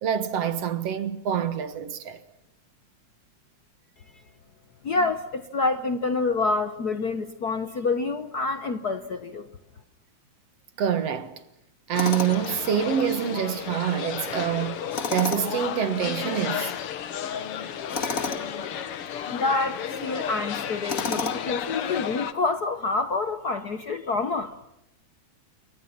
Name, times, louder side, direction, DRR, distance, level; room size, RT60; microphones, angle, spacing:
voice 1, 0.0-2.2 10.8-11.4 11.9-14.8 15.1-16.7, right 9 dB, 60° right, 2.4 m, -26 dB
voice 2, 4.8-9.5 19.3-24.5, left 3 dB, 75° left, 0.9 m, -27 dB
sound 1, 11.9-22.3, left 9 dB, 60° left, 1.9 m, -33 dB
Tools, 12.0-12.5 14.9-15.6 17.9-18.5 20.9-21.6, left 4 dB, 30° left, 2.2 m, -30 dB
28.5 x 24.0 x 5.9 m
omnidirectional pair, 3.4 m